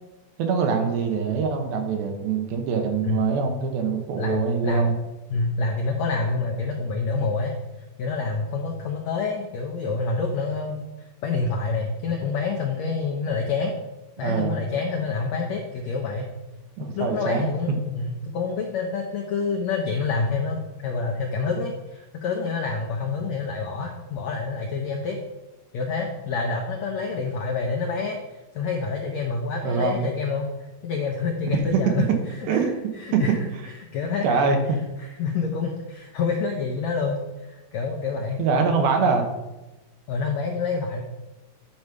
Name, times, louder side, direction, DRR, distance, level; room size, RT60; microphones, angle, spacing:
voice 1, 0.4-5.0 14.2-14.6 16.8-17.5 29.6-30.0 32.5-32.8 33.1-33.2 34.2-34.8 38.4-39.3, right 5 dB, 85° right, 4 dB, 3.0 m, -24 dB
voice 2, 4.1-4.9 5.3-7.5 8.0-13.7 14.2-16.3 16.9-25.2 25.7-32.0 32.4-32.7 32.9-33.4 33.9-34.4 35.0-37.2 37.5-38.4 40.1-41.0, left 4 dB, 90° left, 1 dB, 1.5 m, -27 dB
10.5 x 5.3 x 4.8 m, 1.1 s
omnidirectional pair, 4.3 m